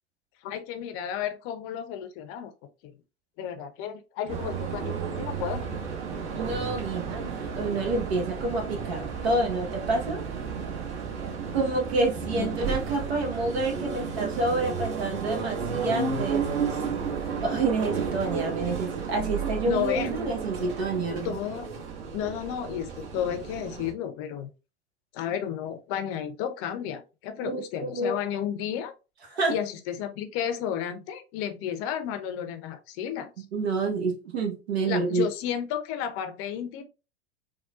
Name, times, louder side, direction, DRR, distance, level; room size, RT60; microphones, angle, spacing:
voice 1, 0.4-2.5 3.4-5.7 12.4-12.5 19.7-20.2 21.2-21.7 22.1-24.5 25.1-28.9 29.5-33.4 34.8-36.8, left 9 dB, 40° left, 0.6 m, -32 dB
sound 1, 4.3-23.9, right 6 dB, 55° right, 1.3 m, -32 dB
voice 2, 6.3-10.3 11.5-16.5 17.4-21.4 27.4-28.2 29.3-29.5 33.5-35.3, right 2 dB, 70° right, 1.2 m, -28 dB
3.6 x 2.3 x 2.4 m
hypercardioid pair, 90°, 33 cm